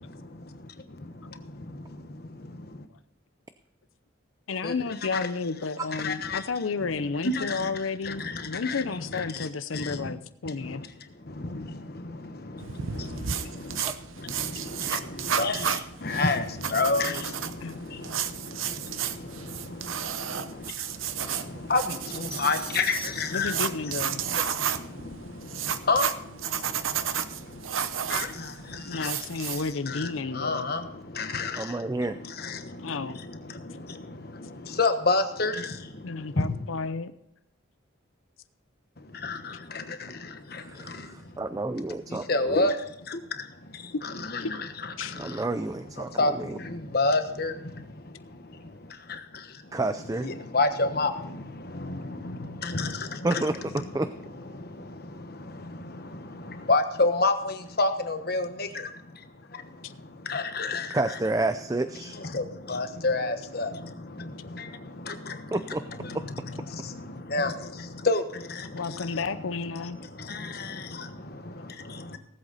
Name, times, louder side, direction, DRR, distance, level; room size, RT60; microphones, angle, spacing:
voice 1, 0.0-2.8 4.6-5.3 6.0-6.5 6.8-10.1 10.4-13.9 14.2-31.8 32.1-34.1 34.6-36.5 39.0-41.4 42.1-45.5 46.0-49.8 50.2-53.4 54.5-61.0 62.1-65.6 66.0-72.2, left 3 dB, 50° left, 8 dB, 1.2 m, -31 dB
voice 2, 4.5-10.8 17.6-17.8 23.3-24.2 28.9-30.7 32.8-33.2 36.0-37.1 43.9-44.5 45.0-45.1 59.8-59.9 68.7-70.0, left 4 dB, 90° left, 12 dB, 0.7 m, -32 dB
sound 1, 12.6-29.7, right 8 dB, 90° right, 0.8 m, -33 dB
sound 2, 22.3-23.8, left 2 dB, 5° left, 1.5 m, -44 dB
voice 3, 31.6-32.2 40.5-42.7 45.2-46.6 49.7-50.3 53.2-54.1 60.9-62.2 65.5-65.8 66.1-66.2, right 2 dB, 15° right, 11 dB, 0.4 m, -30 dB
18.5 x 8.0 x 4.1 m, 0.78 s
head